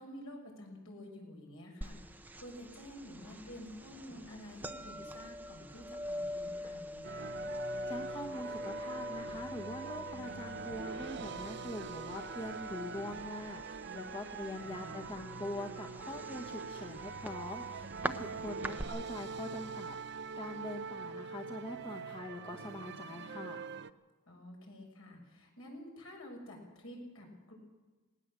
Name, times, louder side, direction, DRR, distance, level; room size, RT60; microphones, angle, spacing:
voice 1, 0.0-7.3 14.6-15.5 18.6-18.8 24.3-27.5, left 1 dB, 70° left, 1 dB, 6.5 m, -50 dB
sound 1, 1.8-18.8, equal, 10° right, 0.7 m, -44 dB
sound 2, 7.0-23.9, right 4 dB, 50° right, 0.6 m, -44 dB
voice 2, 7.9-23.6, left 1 dB, 25° left, 1 dB, 1.3 m, -43 dB
19.5 x 19.0 x 7.7 m, 1.3 s
head